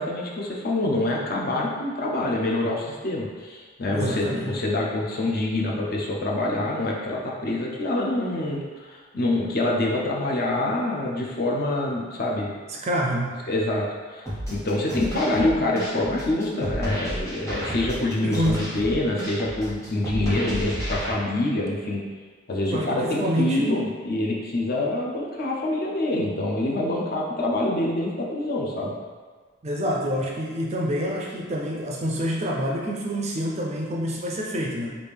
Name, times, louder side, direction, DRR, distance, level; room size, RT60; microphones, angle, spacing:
voice 1, 0.0-12.5 13.5-22.0 22.5-28.9, left 1 dB, 45° left, -2 dB, 0.5 m, -26 dB
voice 2, 3.9-4.6 12.7-13.4 18.2-18.6 22.6-23.8 29.6-35.0, equal, 30° right, -2 dB, 0.4 m, -27 dB
sound 1, 14.3-21.1, equal, 15° left, 0.8 m, -32 dB
3.3 x 2.5 x 3.4 m, 1.5 s
head